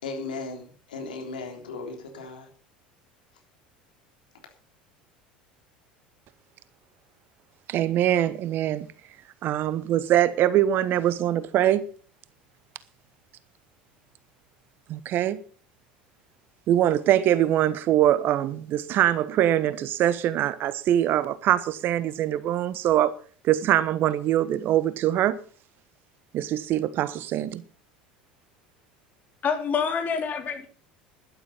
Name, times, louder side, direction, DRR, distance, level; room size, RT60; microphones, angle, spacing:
voice 1, 0.0-2.5, left 3 dB, 80° left, 3.5 m, -36 dB
voice 2, 7.7-8.9 9.4-11.8 14.9-15.4 16.7-23.1 23.4-25.4 26.3-27.6, right 12 dB, 50° right, 1.1 m, -23 dB
voice 3, 29.4-30.7, left 6 dB, 40° left, 3.8 m, -26 dB
12.0 x 11.5 x 5.5 m
hypercardioid pair, 75°, 5 cm